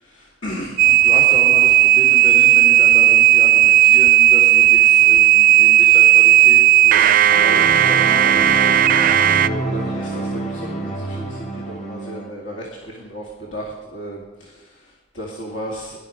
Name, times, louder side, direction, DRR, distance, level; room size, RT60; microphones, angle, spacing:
voice 1, 0.0-8.7 9.4-16.0, equal, 80° left, -3 dB, 2.3 m, -33 dB
sound 1, 0.8-9.5, right 13 dB, 45° right, 0.4 m, -13 dB
Pour Merlin le lapin, 7.3-12.3, right 2 dB, 40° left, 2.6 m, -27 dB
19.0 x 11.5 x 5.2 m, 1.2 s
head